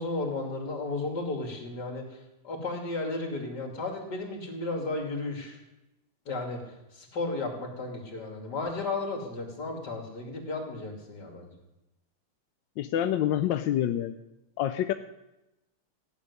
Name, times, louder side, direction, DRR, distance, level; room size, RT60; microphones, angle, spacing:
voice 1, 0.0-2.0 2.4-5.6 6.3-6.6 6.9-11.5, left 2 dB, 50° left, 2 dB, 3.3 m, -34 dB
voice 2, 12.8-14.2 14.6-14.9, left 11 dB, 70° left, 9 dB, 1.2 m, -27 dB
15.5 x 7.2 x 9.7 m, 0.94 s
omnidirectional pair, 2.4 m